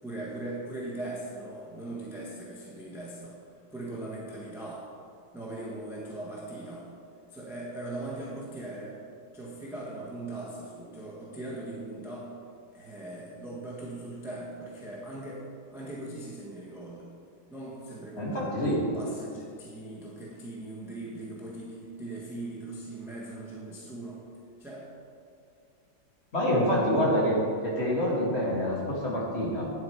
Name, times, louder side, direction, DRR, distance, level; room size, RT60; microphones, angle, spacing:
voice 1, 0.0-3.4 3.7-4.9 5.3-6.9 7.3-9.0 9.3-12.3 12.7-17.1 17.5-18.6 18.9-24.3 24.6-24.9, right 2 dB, ahead, -5 dB, 1.1 m, -40 dB
voice 2, 18.2-18.8 26.3-27.4 27.6-29.6, equal, 35° left, -5 dB, 2.1 m, -26 dB
9.6 x 7.7 x 4.5 m, 2.4 s
omnidirectional pair, 2.1 m